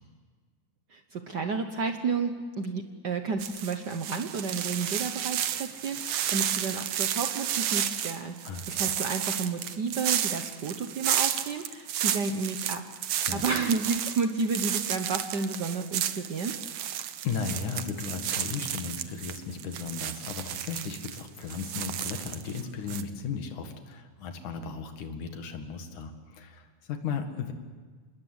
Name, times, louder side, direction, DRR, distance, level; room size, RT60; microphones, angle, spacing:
voice 1, 0.9-12.8 13.3-16.5, right 4 dB, 80° right, 6 dB, 0.9 m, -31 dB
sound 1, 3.4-22.6 22.9-23.0, right 10 dB, 65° right, 1.8 m, -32 dB
voice 2, 8.4-8.9 13.3-13.4 17.2-27.5, left 5 dB, 75° left, 6 dB, 3.4 m, -36 dB
27.0 x 21.5 x 8.1 m, 1.5 s
omnidirectional pair, 3.5 m